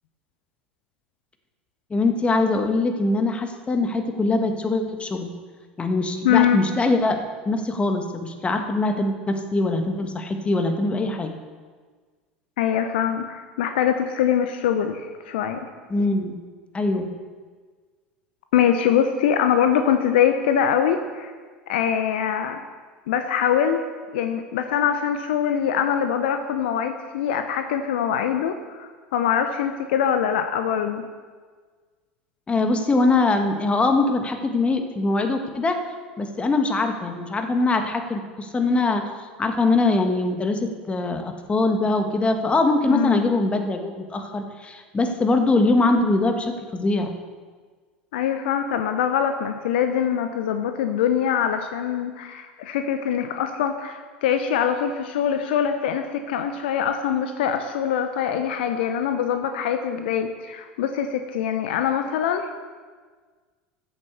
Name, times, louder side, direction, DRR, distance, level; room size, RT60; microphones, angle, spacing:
voice 1, 1.9-5.3 5.8-7.2 7.4-11.3 15.9-16.4 16.7-17.1 32.5-35.8 36.2-39.0 39.4-47.1, left 2 dB, 20° left, 5 dB, 1.7 m, -22 dB
voice 2, 6.2-6.6 12.6-15.7 18.5-21.3 21.7-22.6 23.1-23.8 24.1-31.0 42.9-43.2 48.1-62.5, left 8 dB, 65° left, 7 dB, 0.9 m, -23 dB
14.0 x 7.8 x 6.9 m, 1.5 s
figure-of-eight pair, 75°, 6 cm